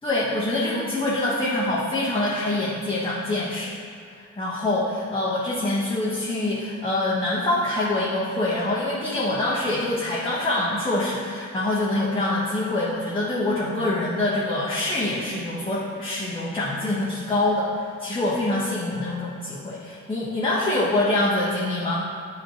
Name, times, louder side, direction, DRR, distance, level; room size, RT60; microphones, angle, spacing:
voice 1, 0.0-3.7 4.1-22.1, left 2 dB, 15° left, -8 dB, 1.2 m, -25 dB
10.0 x 4.3 x 3.0 m, 2.2 s
figure-of-eight pair, 40°, 41 cm